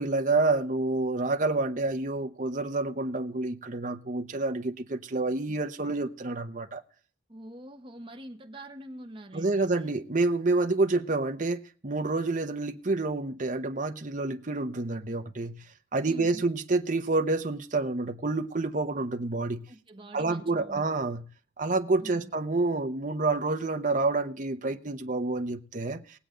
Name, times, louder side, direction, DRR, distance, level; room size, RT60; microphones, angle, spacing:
voice 1, 0.0-6.8 9.3-15.7 15.9-19.6 20.1-21.2 21.6-26.2, right 3 dB, 45° right, 0.9 m, -28 dB
voice 2, 7.3-9.7 16.0-16.5 19.7-20.9 22.0-22.3, right 1 dB, 30° right, 1.2 m, -44 dB
20.0 x 8.1 x 3.8 m
head